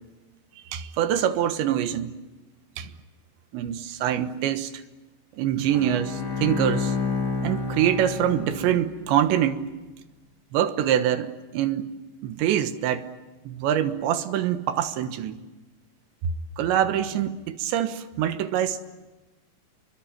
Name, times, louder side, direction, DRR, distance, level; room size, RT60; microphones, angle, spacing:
voice 1, 0.7-2.2 2.8-2.9 3.5-4.7 5.3-7.0 7.4-9.7 10.5-11.9 12.2-13.1 13.5-15.4 16.2-18.8, right 10 dB, 85° right, 3.6 m, -25 dB
Bowed string instrument, 5.7-9.2, left 4 dB, 40° left, 1.6 m, -30 dB
27.5 x 23.5 x 9.2 m
omnidirectional pair, 5.0 m